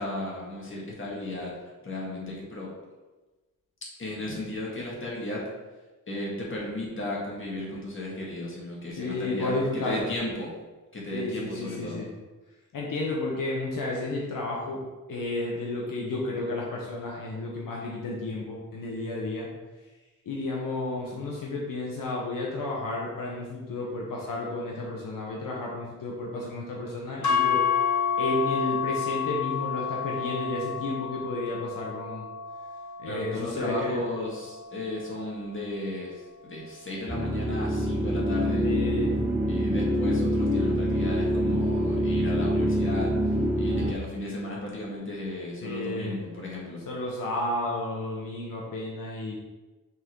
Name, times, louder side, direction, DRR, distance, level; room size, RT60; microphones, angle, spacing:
voice 1, 0.0-2.7 4.0-5.4 6.1-10.5 10.9-12.1 33.0-38.7 39.5-46.8, left 1 dB, 40° left, -4 dB, 2.1 m, -35 dB
voice 2, 9.0-10.1 11.1-12.1 12.7-14.8 15.1-19.5 20.2-27.6 28.2-32.3 33.0-34.0 38.6-39.1 45.6-46.2 46.9-49.4, left 2 dB, 85° left, -3 dB, 1.2 m, -32 dB
sound 1, 27.2-35.5, left 8 dB, 60° left, 1.4 m, -30 dB
sound 2, 37.1-43.9, equal, 10° right, 0.7 m, -25 dB
6.1 x 3.9 x 4.6 m, 1.2 s
wide cardioid pair, 105°, 32 cm